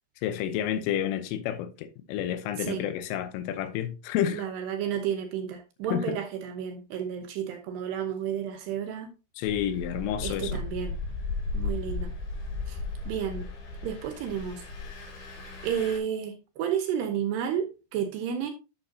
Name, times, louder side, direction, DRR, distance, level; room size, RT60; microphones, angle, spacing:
voice 1, 0.2-4.5 5.9-6.2 9.4-10.6, left 10 dB, 85° left, 3.4 m, -30 dB
voice 2, 4.3-9.1 10.2-10.9 11.5-12.1 12.7-12.8 13.1-13.5 13.8-14.6 15.6-18.5, right 8 dB, 75° right, 2.7 m, -31 dB
Engine, 9.4-16.0, left 3 dB, 65° left, 5.5 m, -35 dB
11.5 x 6.7 x 2.8 m
omnidirectional pair, 5.6 m